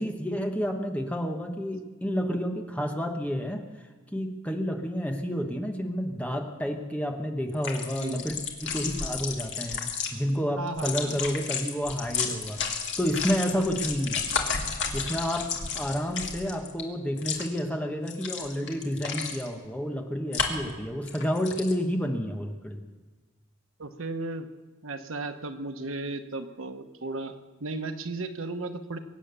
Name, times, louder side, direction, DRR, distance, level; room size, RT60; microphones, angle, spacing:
voice 1, 0.0-3.6 4.1-8.4 8.6-9.8 10.1-14.2 14.9-15.5 15.7-22.8, equal, 5° left, 3 dB, 1.2 m, -30 dB
sound 1, 7.5-10.1 10.7-16.8 17.2-17.6 18.1-19.5 20.3-20.7 21.1-21.7, left 6 dB, 60° left, 2.1 m, -32 dB
voice 2, 10.6-11.1 23.8-24.5 24.8-29.0, right 2 dB, 90° right, 8 dB, 1.1 m, -35 dB
23.5 x 8.8 x 6.9 m, 1.3 s
head